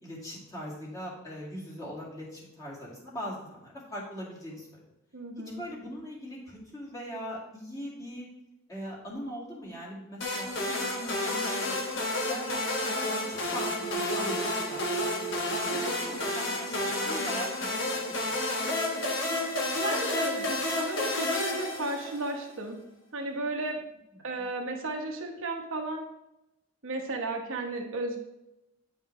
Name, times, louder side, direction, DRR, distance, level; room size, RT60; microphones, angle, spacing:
voice 1, 0.0-4.8 5.4-8.3 8.7-11.8 12.2-14.3 14.6-17.5 17.9-18.3 24.4-24.5, equal, 15° left, -5 dB, 2.0 m, -41 dB
voice 2, 5.1-5.6 19.7-22.8 23.1-23.8 24.2-26.1 26.8-28.2, right 2 dB, 70° right, 2 dB, 1.1 m, -34 dB
sound 1, 10.2-22.4, left 1 dB, 60° left, 1.3 m, -30 dB
9.1 x 5.3 x 3.2 m, 0.90 s
head